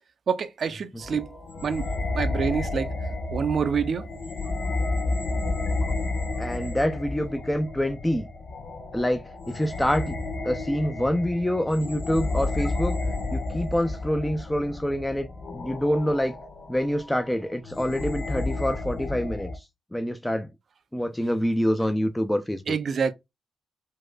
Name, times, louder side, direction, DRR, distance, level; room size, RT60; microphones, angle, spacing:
voice 1, 0.3-1.3 1.6-1.9 2.1-2.9 3.3-4.1 22.7-23.1, right 6 dB, 55° right, 0.5 m, -26 dB
sound 1, 1.0-19.6, left 2 dB, 60° left, 1.0 m, -31 dB
voice 2, 6.4-8.3 8.9-10.1 10.4-13.0 13.3-16.4 16.7-19.6 19.9-20.5 20.9-22.8, equal, 10° left, 0.4 m, -26 dB
4.6 x 2.1 x 2.2 m
supercardioid pair, 55°, 0 cm